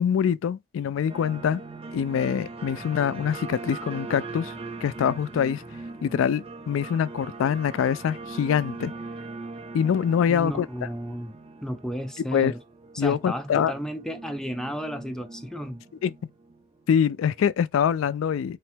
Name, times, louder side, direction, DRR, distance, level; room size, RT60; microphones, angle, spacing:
voice 1, 0.0-1.6 1.9-4.5 4.8-5.6 6.0-8.9 9.7-10.7 12.3-12.5 13.0-13.7 16.0-16.1 16.9-18.6, left 8 dB, 85° left, 0.3 m, -24 dB
sound 1, 1.1-17.4, right 3 dB, 30° right, 0.8 m, -41 dB
voice 2, 10.3-11.4 11.6-12.6 12.9-15.8, equal, 5° left, 0.5 m, -33 dB
5.6 x 2.0 x 3.3 m
head